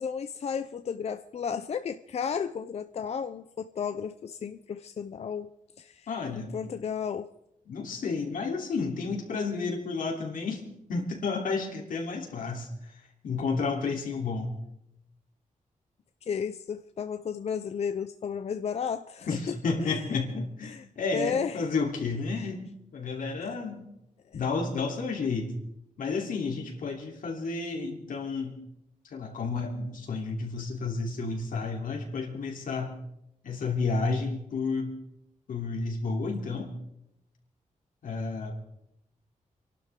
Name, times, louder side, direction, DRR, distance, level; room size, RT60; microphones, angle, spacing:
voice 1, 0.0-5.5 5.8-6.1 6.4-7.3 16.2-19.4 19.8-20.0 20.6-20.8 21.1-21.7 24.3-24.4, left 7 dB, 50° left, 10 dB, 0.6 m, -33 dB
voice 2, 6.1-6.7 7.7-10.6 10.9-14.5 19.3-22.6 22.9-23.9 24.3-25.5 26.0-28.6 29.0-33.0 33.4-35.0 35.5-36.7 38.0-38.5, left 4 dB, 85° left, 1 dB, 3.3 m, -31 dB
27.5 x 12.0 x 3.7 m, 0.83 s
wide cardioid pair, 160°, 14 cm